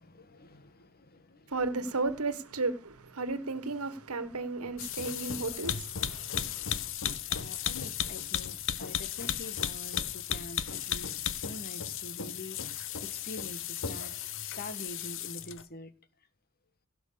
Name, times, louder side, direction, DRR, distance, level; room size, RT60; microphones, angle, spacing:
voice 1, 0.0-1.5 2.0-2.1 7.3-14.1 14.4-15.9, left 1 dB, 45° left, 1.5 m, -46 dB
voice 2, 1.5-6.9, right 3 dB, 85° right, 1.5 m, -34 dB
sound 1, 4.8-15.6, left 9 dB, 60° left, 1.0 m, -35 dB
16.5 x 6.2 x 6.8 m
head